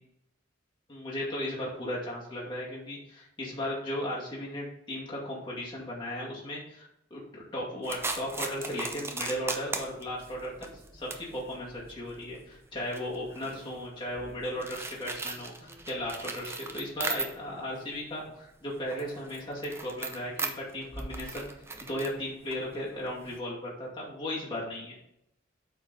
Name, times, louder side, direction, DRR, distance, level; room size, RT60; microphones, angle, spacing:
voice 1, 0.9-10.5 10.9-21.5 21.8-25.0, left 1 dB, 25° left, -5 dB, 2.2 m, -36 dB
sound 1, 7.8-17.6 18.0-23.4, right 3 dB, 15° right, 0.7 m, -39 dB
8.2 x 4.5 x 4.1 m, 0.80 s
head